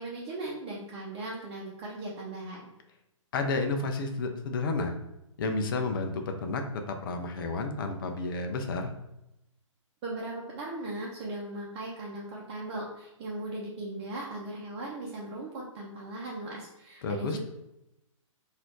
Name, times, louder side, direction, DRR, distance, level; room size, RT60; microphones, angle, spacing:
voice 1, 0.0-2.6 10.0-17.4, right 2 dB, 25° right, -5 dB, 0.9 m, -38 dB
voice 2, 3.3-4.9 5.4-8.9 17.0-17.4, left 3 dB, 40° left, 5 dB, 0.7 m, -31 dB
4.1 x 2.7 x 4.6 m, 0.86 s
figure-of-eight pair, 135°, 17 cm